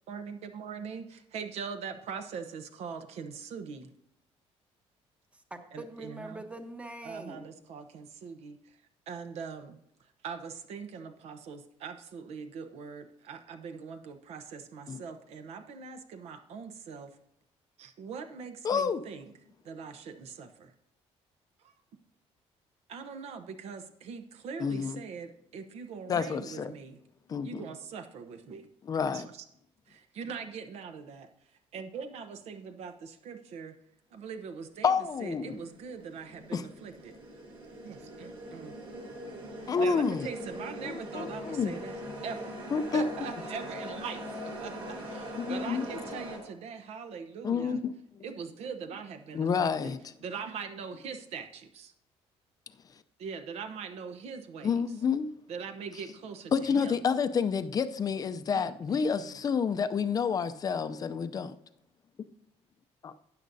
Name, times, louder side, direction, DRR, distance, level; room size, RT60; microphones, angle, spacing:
voice 1, 0.1-3.9 5.7-6.4 7.0-8.7 9.1-9.8 10.2-17.1 17.8-19.3 19.6-20.7 21.6-21.7 22.9-27.0 27.4-28.7 29.1-29.4 29.9-31.3 31.7-33.8 34.1-34.9 35.2-37.2 37.8-38.7 39.8-42.6 42.9-47.8 48.2-49.9 50.2-51.9 53.2-54.8 55.5-57.0 58.5-59.4, right 6 dB, 70° right, 7 dB, 1.0 m, -42 dB
voice 2, 5.3-7.5, right 1 dB, 10° right, 7 dB, 1.0 m, -43 dB
voice 3, 18.6-19.0 24.6-25.0 26.1-26.7 27.3-27.7 28.8-29.3 34.8-35.6 36.5-36.6 39.7-40.3 40.8-41.8 42.7-43.0 45.3-45.9 47.4-48.2 49.3-50.0 54.6-55.3 56.5-61.6 63.0-63.1, left 6 dB, 35° left, 11 dB, 0.5 m, -29 dB
sound 1, 34.9-46.4, equal, 50° right, 4.2 m, -42 dB
12.5 x 9.2 x 2.7 m, 0.75 s
cardioid pair, 125°, 11 cm